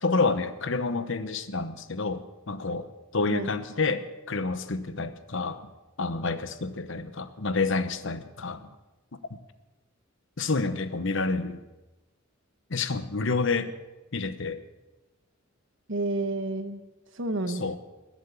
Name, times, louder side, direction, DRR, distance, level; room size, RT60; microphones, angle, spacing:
voice 1, 0.0-5.7 6.0-8.7 9.3-9.4 10.4-11.6 12.7-13.7 14.1-14.6 17.5-17.8, left 3 dB, 65° left, 11 dB, 1.0 m, -29 dB
voice 2, 3.3-3.6 15.9-16.8 17.1-17.8, right 2 dB, 65° right, 8 dB, 1.4 m, -30 dB
21.0 x 7.4 x 8.3 m, 1.1 s
head